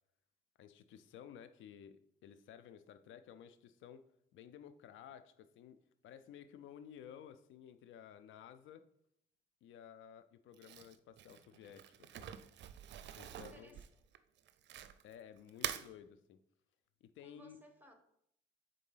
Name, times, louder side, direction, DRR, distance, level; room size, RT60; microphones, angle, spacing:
voice 1, 0.6-4.0 4.3-5.8 6.0-8.9 9.6-12.4 13.1-13.7 15.0-16.4 17.0-17.6, left 9 dB, 75° left, 12 dB, 0.4 m, -55 dB
Crumpling crinkling, 10.5-15.1 15.5-15.9, right 10 dB, 65° right, 0.5 m, -45 dB
voice 2, 13.3-14.0 17.2-18.0, right 1 dB, 10° right, 4 dB, 1.2 m, -61 dB
4.6 x 3.8 x 5.5 m, 0.73 s
cardioid pair, 90°, 20 cm